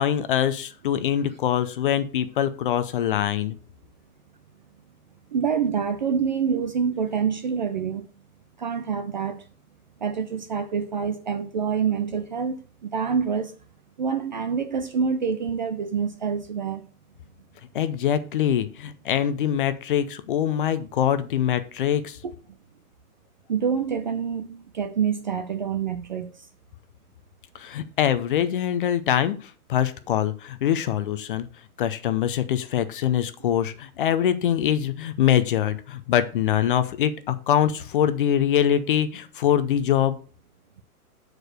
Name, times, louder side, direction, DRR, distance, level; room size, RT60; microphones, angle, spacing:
voice 1, 0.0-3.6 17.7-22.2 27.5-31.5 31.8-40.2, left 10 dB, 35° left, 0.6 m, -23 dB
voice 2, 5.3-8.1 8.6-9.4 10.0-13.5 14.0-16.8 22.2-22.3 23.5-26.3, right 6 dB, 35° right, 0.4 m, -26 dB
6.7 x 4.9 x 6.4 m
hypercardioid pair, 155°, 45 cm